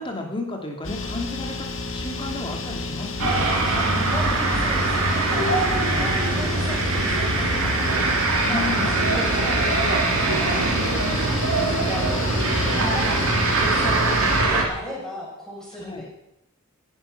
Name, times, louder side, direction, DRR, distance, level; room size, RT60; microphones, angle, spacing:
voice 1, 0.0-3.5 8.4-8.9 15.8-16.0, left 2 dB, 25° left, 2 dB, 2.7 m, -33 dB
sound 1, 0.8-14.4, left 3 dB, 60° left, 2.1 m, -31 dB
sound 2, 3.2-14.6, right 3 dB, 80° right, 3.2 m, -22 dB
voice 2, 4.1-5.6 6.0-8.2 8.5-10.0 10.4-10.6 11.0-14.1 14.5-16.0, left 1 dB, 5° left, -5 dB, 6.3 m, -36 dB
16.0 x 11.0 x 6.0 m, 0.83 s
head